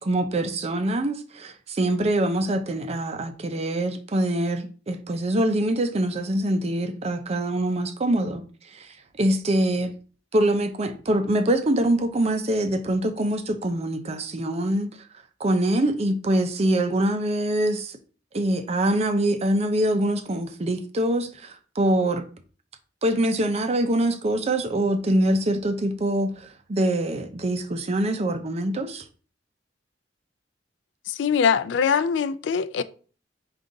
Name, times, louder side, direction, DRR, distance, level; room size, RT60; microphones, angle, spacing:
voice 1, 0.0-8.4 8.7-8.9 9.2-9.9 10.3-15.0 15.4-18.0 18.3-22.2 23.0-29.0, right 1 dB, 35° right, 0.5 m, -24 dB
voice 2, 31.1-32.8, left 6 dB, 75° left, 0.3 m, -22 dB
5.2 x 2.4 x 3.7 m
head